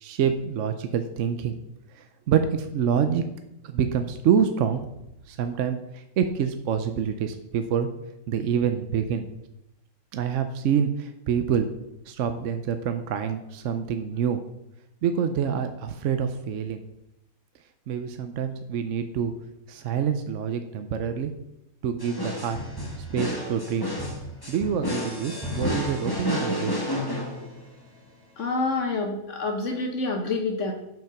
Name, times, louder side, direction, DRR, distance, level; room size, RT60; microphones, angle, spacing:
voice 1, 0.0-1.6 1.9-3.2 3.6-4.9 5.3-7.9 8.3-9.3 10.1-11.7 12.1-14.4 15.0-16.8 17.9-19.3 19.7-21.3 21.8-22.6 23.1-23.9 24.5-26.8, right 7 dB, 65° right, 8 dB, 0.9 m, -26 dB
sound 1, 22.0-27.8, left 1 dB, 15° left, 1.5 m, -30 dB
voice 2, 28.4-30.7, left 3 dB, 60° left, 3 dB, 1.2 m, -27 dB
7.6 x 5.5 x 5.8 m, 0.87 s
omnidirectional pair, 1.5 m